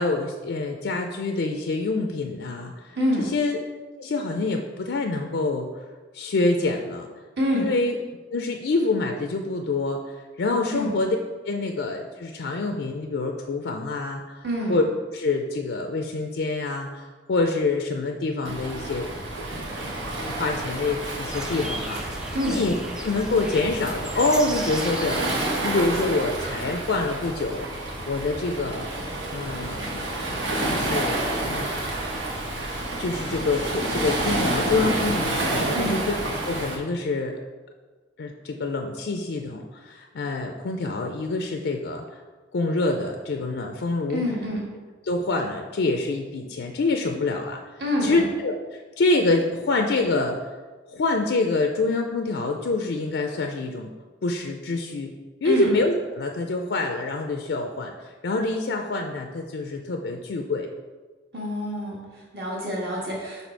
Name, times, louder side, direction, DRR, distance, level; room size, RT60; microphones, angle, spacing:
voice 1, 0.0-3.6 4.0-7.1 7.5-8.0 8.3-11.2 11.4-14.8 15.1-19.1 20.4-22.7 23.0-28.9 29.3-30.0 30.6-31.2 31.5-31.7 33.0-36.0 36.4-37.3 38.2-42.2 42.5-44.2 45.0-47.7 48.0-50.4 50.9-53.9 54.2-55.1 55.4-60.7, left 3 dB, 70° left, 3 dB, 0.4 m, -26 dB
voice 2, 2.9-3.3 7.4-7.7 10.7-10.9 14.4-14.8 22.3-22.6 35.7-36.0 44.1-44.6 47.8-48.3 55.4-55.7 61.3-63.5, equal, 60° right, -5 dB, 1.8 m, -27 dB
Waves surf, 18.4-36.8, right 1 dB, 85° right, 1.2 m, -29 dB
sound 1, 21.3-26.3, equal, 5° right, 0.3 m, -37 dB
5.4 x 4.2 x 4.5 m, 1.4 s
head